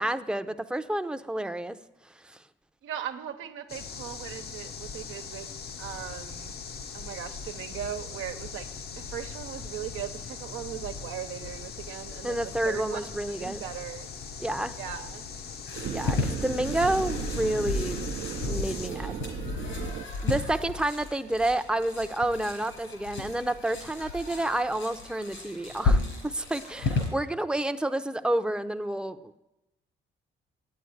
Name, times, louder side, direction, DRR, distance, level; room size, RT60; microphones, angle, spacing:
voice 1, 0.0-1.8 12.2-13.6 14.4-14.8 15.9-18.0 18.4-19.2 20.2-29.4, right 1 dB, 5° right, 9 dB, 0.6 m, -29 dB
voice 2, 2.8-6.6 6.9-8.7 8.9-14.1 14.7-15.2, right 10 dB, 85° right, 7 dB, 1.0 m, -39 dB
sound 1, 3.7-18.9, left 6 dB, 55° left, 0.8 m, -40 dB
sound 2, 15.7-27.1, left 3 dB, 85° left, 4.7 m, -33 dB
sound 3, 15.8-20.0, right 8 dB, 55° right, 0.6 m, -36 dB
9.2 x 8.5 x 9.6 m, 0.97 s
cardioid pair, 90°, 20 cm